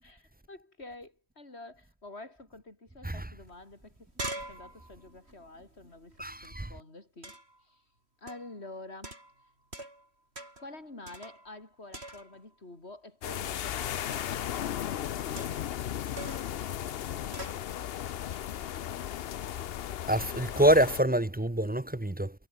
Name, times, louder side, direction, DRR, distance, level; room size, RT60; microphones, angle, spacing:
voice 1, 0.0-4.1 4.5-7.8 8.2-9.2 10.6-15.7, left 2 dB, 90° left, 4.6 m, -48 dB
sound 1, 3.4-3.5 3.8-6.5 7.2-7.6 8.3-8.6 9.0-10.1 10.4-10.7 11.1-11.6 11.9-12.5 14.1-14.5 15.4-15.8 16.2-16.6 17.3-17.6, right 1 dB, 80° right, 7.1 m, -43 dB
voice 2, 6.2-6.7 20.1-22.3, right 1 dB, 10° right, 0.6 m, -26 dB
sound 2, 13.2-21.0, left 10 dB, 70° left, 0.9 m, -35 dB
omnidirectional pair, 1.1 m